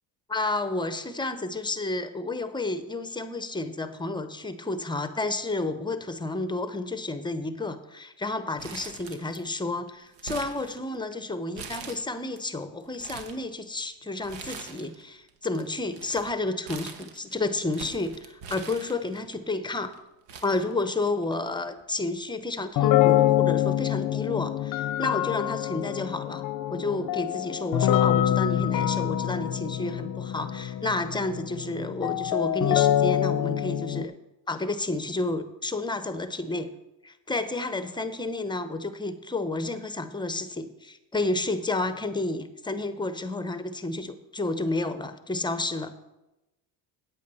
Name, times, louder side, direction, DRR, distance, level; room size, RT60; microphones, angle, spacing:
voice 1, 0.3-19.9 20.4-26.4 26.7-34.1 34.5-36.7 37.0-45.9, left 2 dB, 10° left, 11 dB, 0.7 m, -31 dB
Crumpling crinkling, 8.6-9.6 9.9-11.1 11.5-12.4 12.8-13.4 14.2-15.0 15.3-19.3 19.9-20.0 20.3-21.3 21.6-21.7 22.7-23.0, right 6 dB, 90° right, 1.2 m, -43 dB
sound 1, 22.8-34.0, left 12 dB, 50° left, 0.6 m, -25 dB
8.9 x 8.5 x 5.4 m, 0.97 s
cardioid pair, 110°, 42 cm